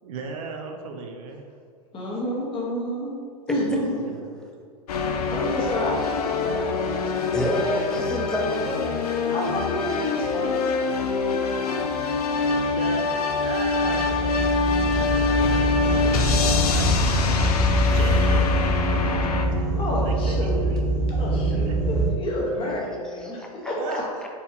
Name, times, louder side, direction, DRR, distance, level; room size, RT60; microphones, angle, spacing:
voice 1, 0.0-1.5 4.0-4.3 12.8-19.7 20.0-20.9 21.7-21.8 23.8-24.3, right 4 dB, 65° right, 3 dB, 0.5 m, -37 dB
voice 2, 1.9-3.1 3.5-4.0 5.3-7.8 9.3-10.7 19.7-20.6 21.1-24.0, left 1 dB, 30° left, -3 dB, 0.9 m, -29 dB
sound 1, 4.9-19.5, left 4 dB, 85° left, 0.4 m, -24 dB
voice 3, 7.3-9.0 23.2-23.7 24.2-24.3, equal, 5° left, -1 dB, 0.5 m, -28 dB
sound 2, 13.5-22.1, right 1 dB, 40° right, 1.4 m, -24 dB
4.0 x 2.6 x 2.7 m, 2.2 s
hypercardioid pair, 105°, 19 cm